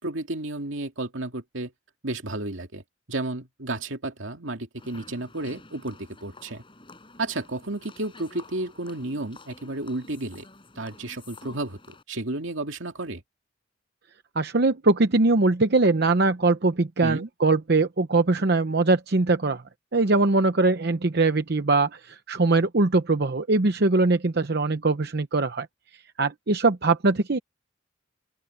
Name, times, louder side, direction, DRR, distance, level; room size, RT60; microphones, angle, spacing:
voice 1, 0.0-1.7 2.0-2.8 3.1-6.6 7.2-10.5 10.8-13.2 17.0-17.3, right 2 dB, 75° right, 2.4 m, -32 dB
sound 1, 4.8-12.0, left 3 dB, 25° left, 6.5 m, -49 dB
voice 2, 14.4-19.6 19.9-25.7 26.2-27.4, right 3 dB, 55° right, 0.8 m, -22 dB
open air
head